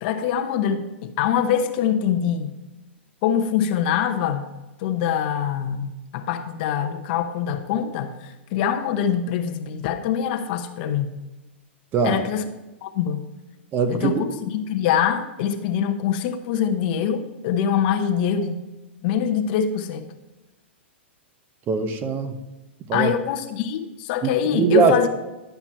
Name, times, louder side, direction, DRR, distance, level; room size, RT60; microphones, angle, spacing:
voice 1, 0.0-2.5 3.2-4.4 4.8-11.1 12.0-12.4 12.8-13.2 13.9-18.6 19.0-20.1 22.9-25.1, left 8 dB, 50° left, 7 dB, 1.0 m, -24 dB
voice 2, 13.7-14.2 21.7-22.3 22.9-23.1 24.2-25.1, right 5 dB, 30° right, 8 dB, 1.0 m, -21 dB
11.5 x 5.9 x 4.4 m, 1.1 s
hypercardioid pair, 125°, 6 cm